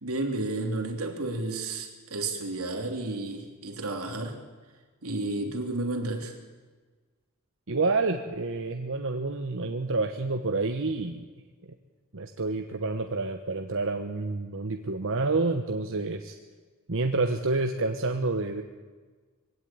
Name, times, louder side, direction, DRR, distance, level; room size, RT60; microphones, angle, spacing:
voice 1, 0.0-4.4 5.0-6.3, right 2 dB, 90° right, 3 dB, 3.3 m, -32 dB
voice 2, 7.7-11.2 11.6-11.7 12.1-16.3 16.9-18.6, right 3 dB, 65° right, 5 dB, 1.2 m, -28 dB
22.0 x 16.5 x 8.9 m, 1.4 s
head